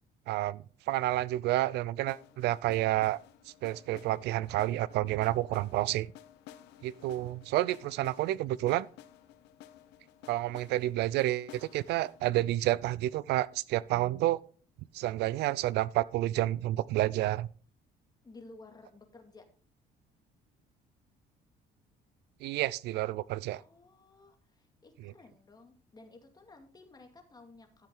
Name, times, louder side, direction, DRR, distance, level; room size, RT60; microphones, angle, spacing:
voice 1, 0.3-3.2 3.6-6.1 6.8-8.9 10.3-14.4 14.9-17.5 22.4-23.6 25.0-25.1, right 16 dB, 80° right, 0.5 m, -30 dB
sound 1, 2.1-14.0, left 12 dB, 90° left, 0.9 m, -55 dB
voice 2, 18.2-19.5 23.5-27.9, left 3 dB, 25° left, 2.3 m, -55 dB
12.5 x 7.4 x 3.8 m
cardioid pair, 110°, 17 cm